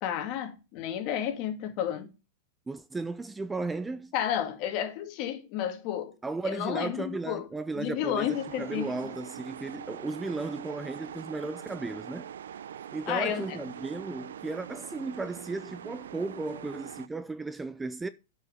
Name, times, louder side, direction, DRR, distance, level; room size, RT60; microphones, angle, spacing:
voice 1, 0.0-2.1 4.1-6.1 6.4-7.5 7.8-8.9 13.1-13.6, left 10 dB, 45° left, 2.2 m, -31 dB
voice 2, 2.7-4.1 6.2-12.3 12.9-18.1, right 3 dB, 10° right, 0.4 m, -35 dB
sound 1, 8.2-17.1, right 9 dB, 85° right, 0.6 m, -43 dB
9.1 x 5.8 x 5.5 m
hypercardioid pair, 140°, 0 cm